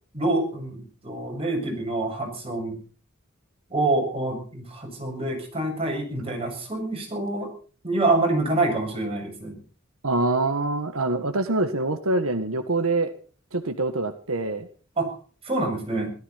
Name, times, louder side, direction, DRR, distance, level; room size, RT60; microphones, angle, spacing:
voice 1, 0.1-2.8 3.7-7.5 7.8-9.6 15.0-15.1 15.4-16.1, right 2 dB, 30° right, 1 dB, 7.3 m, -26 dB
voice 2, 10.0-13.1 13.5-14.7, right 2 dB, 85° right, 8 dB, 1.6 m, -25 dB
17.0 x 14.0 x 5.7 m, 0.41 s
head